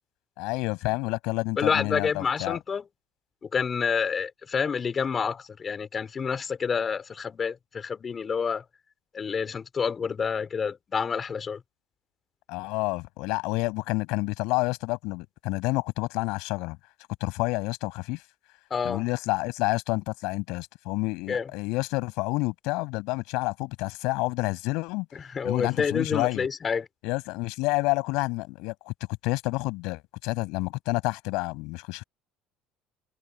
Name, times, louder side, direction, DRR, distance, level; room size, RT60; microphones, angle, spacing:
voice 1, 0.4-2.6 12.5-16.8 17.2-18.2 18.8-25.1 25.4-26.5 27.0-28.9 29.2-32.0, left 24 dB, 75° left, 7.9 m, -29 dB
voice 2, 1.6-2.9 3.5-8.6 9.1-11.6 18.7-19.0 21.3-21.5 25.3-26.8, left 6 dB, 35° left, 4.3 m, -28 dB
supercardioid pair, 95°, 0 cm